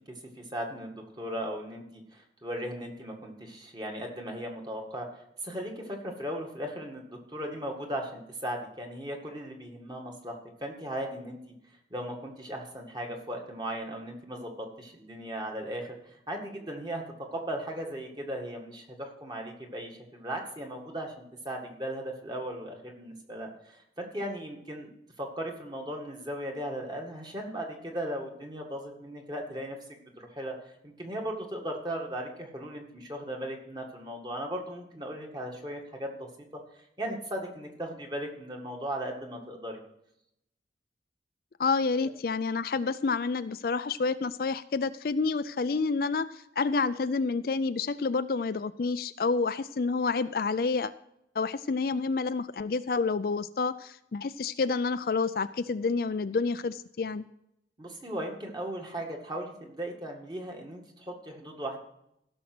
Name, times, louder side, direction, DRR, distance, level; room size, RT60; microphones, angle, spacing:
voice 1, 0.4-5.1 5.4-11.4 11.9-15.9 16.3-17.0 17.3-24.9 25.2-30.6 30.8-36.3 37.0-39.8 57.8-61.8, right 1 dB, 25° right, 1 dB, 1.9 m, -37 dB
voice 2, 41.6-50.9 51.4-57.2, left 4 dB, 55° left, 13 dB, 0.4 m, -29 dB
15.5 x 6.3 x 6.1 m, 0.77 s
head